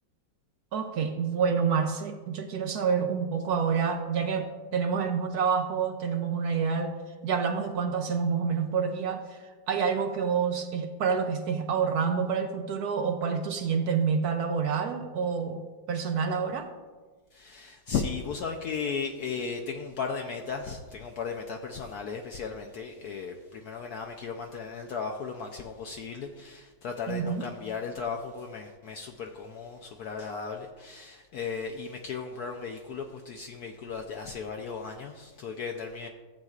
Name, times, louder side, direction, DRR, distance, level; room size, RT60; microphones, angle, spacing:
voice 1, 0.7-6.9 7.2-15.6 15.9-16.7 27.1-27.4, right 6 dB, 65° right, 5 dB, 1.0 m, -28 dB
voice 2, 17.3-36.1, left 5 dB, 70° left, 3 dB, 1.0 m, -36 dB
14.5 x 7.8 x 2.4 m, 1.4 s
omnidirectional pair, 2.0 m